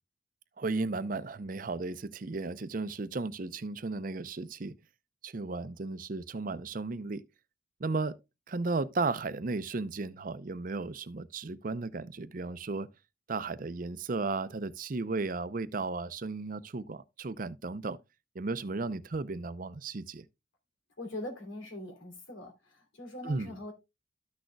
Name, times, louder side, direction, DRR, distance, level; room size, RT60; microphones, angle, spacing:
voice 1, 0.6-4.7 5.2-7.2 7.8-8.2 8.5-12.9 13.3-18.0 18.3-20.2 23.2-23.5, right 3 dB, 45° right, 0.5 m, -34 dB
voice 2, 21.0-23.7, left 1 dB, 85° left, 3.0 m, -42 dB
13.0 x 6.3 x 2.2 m
head